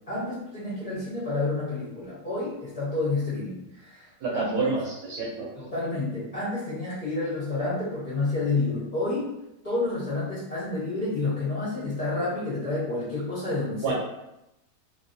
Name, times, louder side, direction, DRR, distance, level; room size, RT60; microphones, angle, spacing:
voice 1, 0.1-4.7 5.6-9.3 9.6-13.9, left 2 dB, 30° left, -10 dB, 1.1 m, -29 dB
voice 2, 4.2-5.5 13.8-13.9, right 4 dB, 80° right, -3 dB, 1.2 m, -28 dB
2.9 x 2.8 x 2.6 m, 0.89 s
omnidirectional pair, 1.7 m